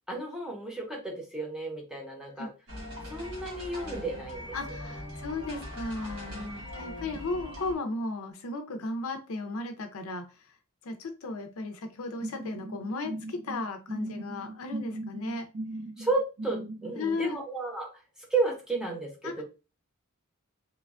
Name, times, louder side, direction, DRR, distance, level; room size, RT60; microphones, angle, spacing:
voice 1, 0.1-2.5 3.1-4.8 6.3-6.6 16.0-17.9 18.3-19.4, right 3 dB, 5° right, -1 dB, 0.8 m, -33 dB
sound 1, 2.7-7.7, left 1 dB, 85° right, 1.4 m, -41 dB
voice 2, 4.5-6.5 6.7-10.2 10.8-15.5 17.0-17.4 19.2-19.4, left 3 dB, 70° left, 6 dB, 0.5 m, -35 dB
sound 2, 12.2-17.0, right 1 dB, 50° right, 0.5 m, -39 dB
3.1 x 2.2 x 2.4 m, 0.30 s
head